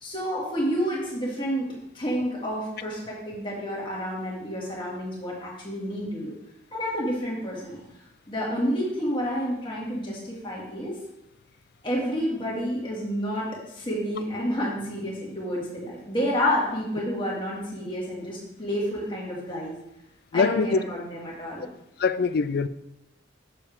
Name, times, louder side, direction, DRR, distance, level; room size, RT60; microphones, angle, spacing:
voice 1, 0.0-6.3 6.7-7.8 8.3-11.0 11.8-19.8 20.3-21.7, equal, 25° left, 2.1 m, -29 dB
voice 2, 20.3-20.8 22.0-22.7, left 5 dB, 50° left, 0.3 m, -23 dB
6.9 x 6.8 x 3.6 m
head